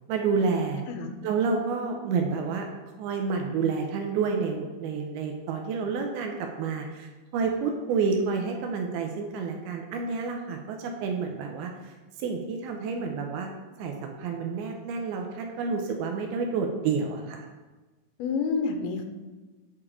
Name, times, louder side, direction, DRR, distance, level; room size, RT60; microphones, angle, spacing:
voice 1, 0.1-0.8 1.2-2.7 3.0-11.7 12.2-13.5 13.8-17.4, right 5 dB, 85° right, 3 dB, 2.6 m, -29 dB
voice 2, 0.9-1.2 18.2-19.0, left 5 dB, 85° left, 5 dB, 2.6 m, -28 dB
8.3 x 5.0 x 3.6 m, 1.2 s
omnidirectional pair, 4.4 m